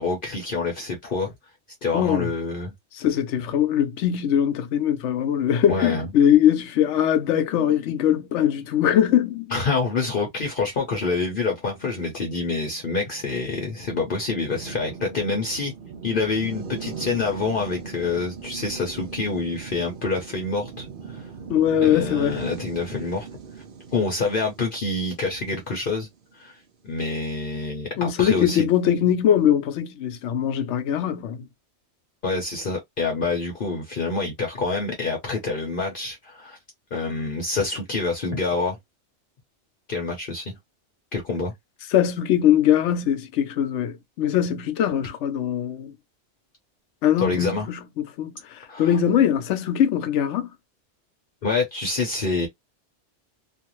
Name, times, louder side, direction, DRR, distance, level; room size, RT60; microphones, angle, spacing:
voice 1, 0.0-1.3 1.8-2.7 5.7-6.1 9.5-15.7 16.0-21.3 21.8-23.3 23.6-23.7 23.9-26.1 26.3-28.7 32.2-36.6 36.9-38.8 39.9-40.6 41.1-41.5 47.2-47.7 48.7-49.0 51.4-52.5, left 3 dB, 55° left, 0.9 m, -27 dB
voice 2, 1.9-2.3 3.0-9.5 21.5-22.4 28.0-31.5 41.9-46.0 47.0-50.5, left 10 dB, 85° left, 0.9 m, -21 dB
sound 1, 11.0-26.5, right 5 dB, 60° right, 0.7 m, -40 dB
2.5 x 2.4 x 3.0 m
omnidirectional pair, 1.2 m